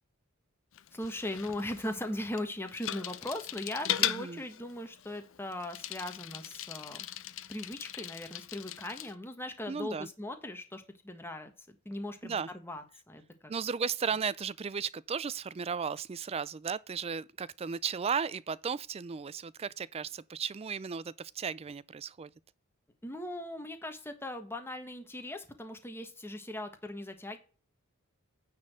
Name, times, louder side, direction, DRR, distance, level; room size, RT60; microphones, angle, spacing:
Bicycle, 0.7-9.1, left 12 dB, 65° left, 0.6 m, -38 dB
voice 1, 0.9-7.1 7.5-13.5 23.0-27.4, left 1 dB, 10° left, 1.4 m, -39 dB
voice 2, 4.0-4.4 9.7-10.1 12.2-12.5 13.5-22.3, right 6 dB, 30° right, 0.4 m, -35 dB
9.5 x 4.3 x 6.4 m
head